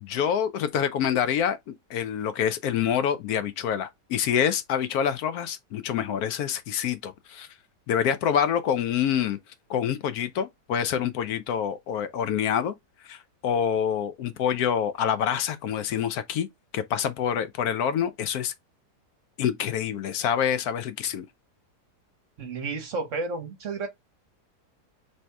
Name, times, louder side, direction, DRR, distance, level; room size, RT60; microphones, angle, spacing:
voice 1, 0.0-1.6 1.9-7.5 7.9-9.4 9.7-12.7 13.0-16.5 16.7-18.5 19.4-21.3, left 8 dB, 75° left, 1.0 m, -26 dB
voice 2, 22.4-23.9, right 3 dB, 55° right, 1.0 m, -31 dB
3.2 x 2.7 x 4.5 m
omnidirectional pair, 1.7 m